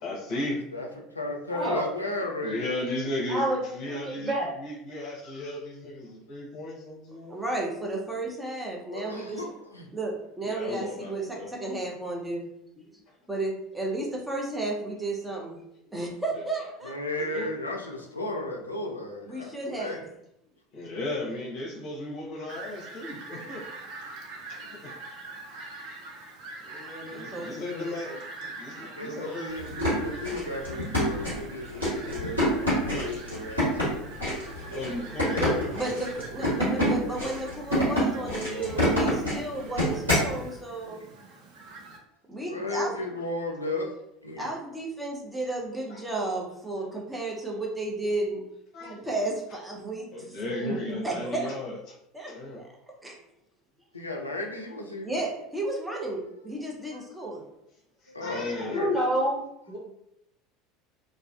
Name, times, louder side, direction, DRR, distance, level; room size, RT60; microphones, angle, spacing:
voice 1, 0.0-0.6 2.4-3.4 3.7-7.4 9.0-9.1 10.4-11.5 17.2-17.5 20.7-23.7 24.5-24.9 27.1-29.6 34.7-35.6 38.1-39.2 45.9-46.0 48.7-49.1 50.1-51.9 52.3-52.6 58.2-58.8, left 1 dB, 50° left, -3 dB, 0.7 m, -35 dB
voice 2, 0.7-2.7 8.9-9.9 16.8-20.0 24.6-24.8 28.8-34.1 36.7-37.2 40.8-41.2 42.5-43.9 44.2-44.5 53.9-55.1 56.9-57.0 58.1-59.0, left 2 dB, 85° left, 1 dB, 0.4 m, -35 dB
voice 3, 1.5-1.8 3.3-3.6 3.8-4.5 50.6-51.1 58.6-59.4 59.7-59.8, equal, 25° right, -6 dB, 1.3 m, -28 dB
voice 4, 7.3-9.4 9.9-12.5 12.8-12.9 13.3-15.6 15.9-16.9 19.3-20.0 26.6-27.9 35.3-41.1 42.3-43.0 44.4-48.4 48.8-50.1 51.0-51.5 52.1-52.7 53.0-53.1 55.0-57.4, right 2 dB, 5° right, -2 dB, 0.7 m, -33 dB
Fowl, 22.5-42.0, right 2 dB, 55° right, 0.5 m, -44 dB
sound 1, 29.6-40.3, left 1 dB, 90° right, 1.3 m, -27 dB
2.4 x 2.4 x 2.2 m, 0.80 s
figure-of-eight pair, 70°, 0 cm